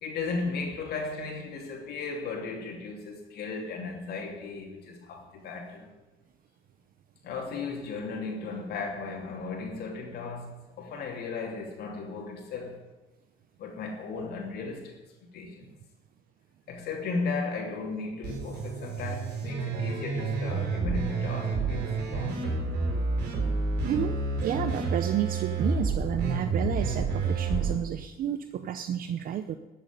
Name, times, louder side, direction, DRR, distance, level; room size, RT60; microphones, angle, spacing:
voice 1, 0.0-5.9 7.2-12.8 13.6-15.0 15.3-15.7 16.7-21.8 22.1-22.6, left 4 dB, 70° left, 1 dB, 3.0 m, -35 dB
sound 1, 18.2-27.7, right 4 dB, 85° right, 4.1 m, -29 dB
voice 2, 23.8-29.5, right 9 dB, 55° right, 9 dB, 0.8 m, -31 dB
12.0 x 7.8 x 9.8 m, 1.1 s
cardioid pair, 110°, 17 cm